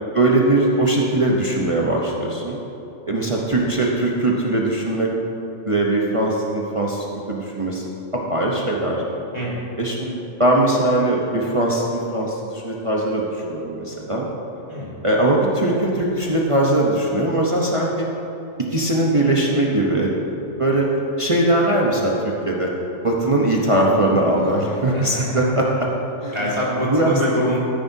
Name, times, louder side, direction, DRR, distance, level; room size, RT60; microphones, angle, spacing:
voice 1, 0.1-2.6 3.1-5.1 5.6-7.9 8.3-9.0 9.8-14.3 15.0-18.1 18.7-20.1 20.6-20.9 21.2-22.7 23.0-25.9 26.2-26.4 26.9-27.2, right 1 dB, 30° right, -3 dB, 0.8 m, -20 dB
voice 2, 9.3-9.7 14.7-14.9 24.4-24.5 24.9-25.4 26.3-27.6, equal, 20° left, -8 dB, 1.8 m, -25 dB
14.0 x 9.6 x 2.7 m, 3.0 s
omnidirectional pair, 1.3 m